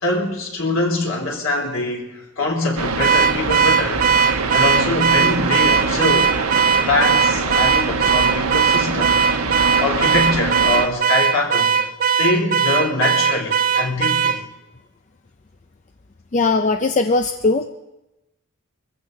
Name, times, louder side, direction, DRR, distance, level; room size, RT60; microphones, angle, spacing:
voice 1, 0.0-4.1 4.5-6.3 6.7-9.2 9.8-11.9 12.2-14.4, left 2 dB, 65° left, 1 dB, 3.3 m, -23 dB
sound 1, 2.8-10.9, right 4 dB, 85° right, 1.3 m, -23 dB
Car / Alarm, 3.0-14.4, right 6 dB, 40° right, 0.5 m, -19 dB
voice 2, 16.3-17.7, left 3 dB, 35° left, 7 dB, 0.5 m, -19 dB
23.5 x 15.0 x 3.9 m, 0.98 s
head